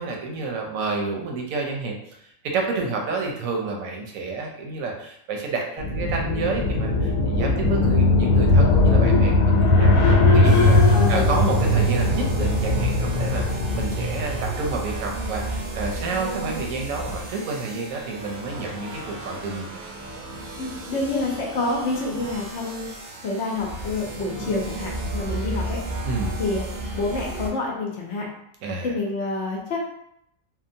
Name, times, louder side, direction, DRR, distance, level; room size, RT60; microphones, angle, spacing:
voice 1, 0.0-2.0 2.4-10.0 10.3-19.6 26.0-26.4 28.6-28.9, right 3 dB, 85° right, 1 dB, 1.0 m, -29 dB
sound 1, 5.8-14.6, left 2 dB, 85° left, 1.1 m, -19 dB
Bass guitar, 7.6-13.9, left 14 dB, 20° left, 0.7 m, -30 dB
sound 2, 10.4-27.5, right 2 dB, 60° right, 0.6 m, -33 dB
voice 2, 10.9-11.4 20.6-22.9 23.2-25.8 26.4-26.7 26.9-28.3 28.8-29.8, left 3 dB, 65° left, -2 dB, 0.8 m, -28 dB
2.8 x 2.1 x 2.6 m, 0.74 s
omnidirectional pair, 1.4 m